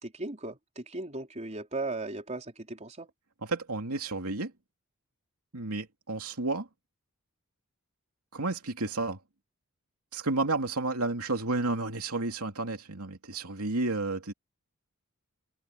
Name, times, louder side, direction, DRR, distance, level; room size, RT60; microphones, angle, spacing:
voice 1, 0.0-3.1, right 2 dB, 30° right, 4.1 m, -37 dB
voice 2, 3.4-4.5 5.5-6.7 8.3-9.2 10.1-14.3, right 2 dB, 75° right, 2.8 m, -31 dB
head